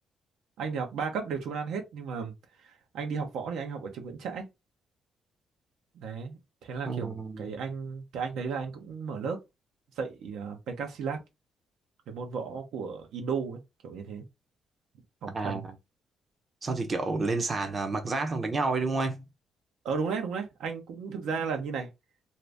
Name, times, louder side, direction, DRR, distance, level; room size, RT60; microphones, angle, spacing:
voice 1, 0.6-2.3 2.6-4.5 5.9-9.4 10.0-11.2 12.1-14.2 15.2-15.7 19.8-21.9, right 5 dB, 80° right, 0.9 m, -34 dB
voice 2, 6.9-7.5 15.3-15.7 16.6-19.2, right 3 dB, 35° right, 0.7 m, -30 dB
2.7 x 2.6 x 3.4 m
cardioid pair, 90°, 0 cm